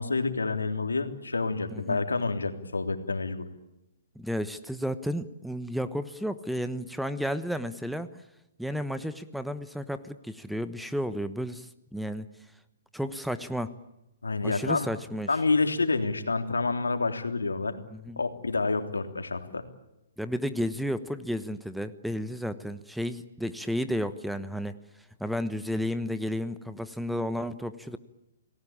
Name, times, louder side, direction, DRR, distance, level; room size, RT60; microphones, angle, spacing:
voice 1, 0.0-3.4 14.2-14.9 15.3-17.8 18.2-19.6, left 3 dB, 85° left, 7 dB, 3.3 m, -28 dB
voice 2, 4.1-8.1 8.6-12.3 12.9-13.7 14.4-15.3 17.9-18.2 20.2-24.7 25.2-28.0, equal, ahead, 12 dB, 1.2 m, -32 dB
30.0 x 19.0 x 8.7 m, 0.93 s
figure-of-eight pair, 130°, 0 cm